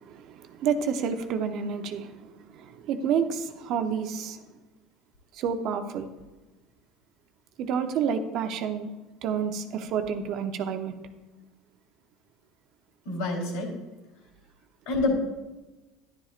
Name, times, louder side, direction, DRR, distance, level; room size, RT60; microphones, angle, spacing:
voice 1, 0.0-4.4 5.3-6.1 7.6-8.9 9.2-10.9, right 7 dB, 50° right, 7 dB, 0.8 m, -29 dB
voice 2, 13.1-13.8 14.9-15.1, left 3 dB, 75° left, 1 dB, 3.5 m, -27 dB
11.0 x 10.5 x 2.5 m, 1.2 s
cardioid pair, 145°, 0 cm